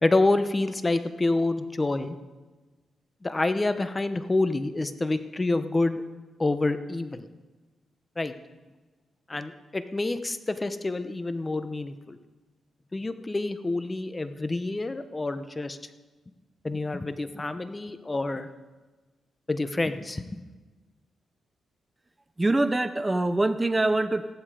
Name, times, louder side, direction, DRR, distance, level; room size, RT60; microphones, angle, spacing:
voice 1, 0.0-2.2 3.2-6.0 6.4-7.3 8.2-8.3 9.3-12.2 12.9-15.8 16.6-18.5 19.5-20.4, left 2 dB, 25° left, 11 dB, 0.9 m, -27 dB
voice 2, 22.4-24.3, right 2 dB, 20° right, 12 dB, 0.7 m, -24 dB
15.0 x 11.0 x 5.0 m, 1.2 s
cardioid pair, 70°, 0 cm